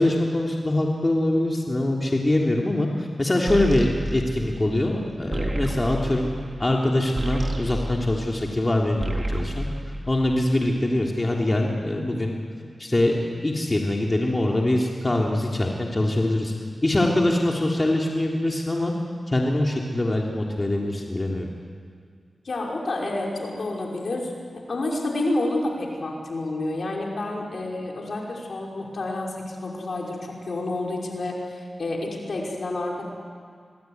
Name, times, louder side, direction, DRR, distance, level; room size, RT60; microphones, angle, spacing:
voice 1, 0.0-6.3 6.6-9.7 10.1-12.3 12.8-16.5 16.8-18.9 19.3-21.5, left 1 dB, 30° left, -1 dB, 3.4 m, -23 dB
sound 1, 3.5-8.6 8.9-10.7, right 1 dB, 35° right, 3.7 m, -30 dB
voice 2, 22.4-24.3 24.7-33.1, left 2 dB, 70° left, -1 dB, 5.5 m, -29 dB
26.5 x 19.5 x 9.6 m, 2.1 s
cardioid pair, 45°, 0 cm